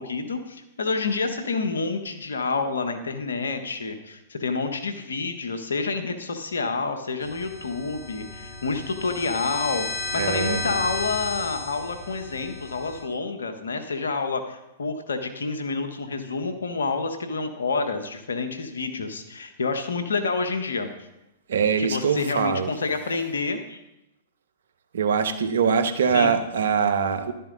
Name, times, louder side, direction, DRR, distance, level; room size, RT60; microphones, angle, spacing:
voice 1, 0.0-20.9 21.8-23.8 26.1-26.4, left 4 dB, 80° left, 7 dB, 1.4 m, -28 dB
sound 1, 7.2-13.0, left 3 dB, 40° left, 3.7 m, -33 dB
voice 2, 10.1-10.6 21.5-22.7 24.9-27.3, right 6 dB, 70° right, 10 dB, 1.1 m, -23 dB
12.0 x 10.0 x 4.1 m, 0.92 s
hypercardioid pair, 110°, 0 cm